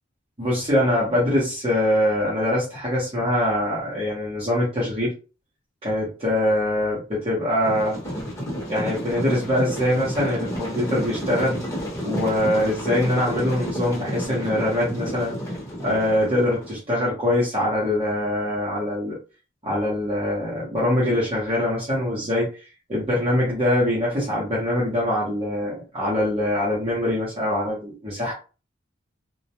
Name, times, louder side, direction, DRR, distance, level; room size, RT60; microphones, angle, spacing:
voice 1, 0.4-5.1 5.8-8.0 8.6-11.6 12.0-15.3 15.8-19.2 19.6-22.5 22.9-28.3, left 1 dB, 30° right, -7 dB, 0.8 m, -23 dB
sound 1, 7.6-16.7, equal, 15° left, 0.9 m, -31 dB
2.2 x 2.1 x 2.8 m, 0.34 s
head